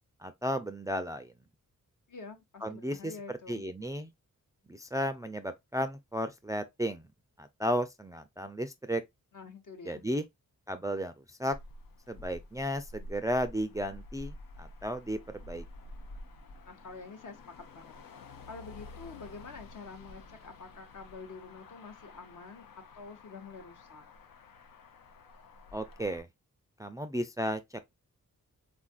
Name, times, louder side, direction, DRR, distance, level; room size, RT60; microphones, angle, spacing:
voice 1, 0.2-1.3 2.6-3.1 3.5-4.1 4.7-7.1 7.4-9.0 9.9-10.2 10.7-11.1 11.4-11.5 12.1-15.6 25.7-26.3 26.8-27.6, equal, 10° right, 0.3 m, -34 dB
voice 2, 2.1-3.6 9.3-10.1 16.6-18.0 18.5-24.1, left 4 dB, 65° left, 0.9 m, -47 dB
Motor vehicle (road), 11.5-26.2, left 2 dB, 85° left, 0.6 m, -50 dB
3.5 x 2.4 x 2.3 m
cardioid pair, 50°, 34 cm